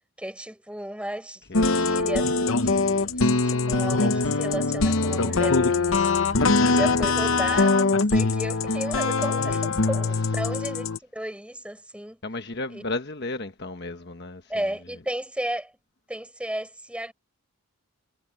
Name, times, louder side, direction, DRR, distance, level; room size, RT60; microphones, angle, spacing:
voice 1, 0.2-6.1 6.6-12.2 12.7-12.8 14.5-15.7 16.1-17.1, right 1 dB, 5° right, 5.7 m, -34 dB
sound 1, 1.5-11.0, left 3 dB, 65° left, 0.9 m, -22 dB
voice 2, 1.5-1.9 9.7-10.2 12.2-14.5, left 2 dB, 50° left, 1.2 m, -34 dB
head